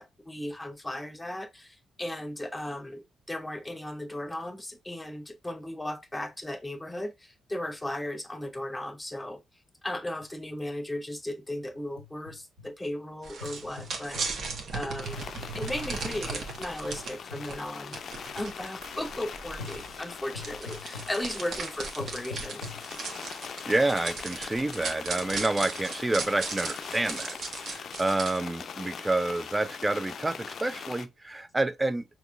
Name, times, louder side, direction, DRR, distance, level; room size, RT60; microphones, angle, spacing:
voice 1, 0.0-9.4 9.8-18.0 18.3-22.7, left 1 dB, 10° left, 0.9 m, -36 dB
sound 1, 10.2-10.3 10.6-10.7 11.5-12.7 13.4-14.4 15.2-16.5 17.3-17.5 18.3-18.5 18.8-19.1 19.6-19.9 20.3-21.2 22.0-22.9, left 4 dB, 75° right, 2.2 m, -43 dB
sound 2, 13.2-17.1 17.5-17.6 17.9-28.4, right 4 dB, 50° right, 1.1 m, -37 dB
sound 3, 15.0-31.1, left 6 dB, 50° left, 0.5 m, -42 dB
voice 2, 23.7-32.0, right 2 dB, 20° right, 0.5 m, -29 dB
5.9 x 3.0 x 2.4 m
figure-of-eight pair, 40°, 0 cm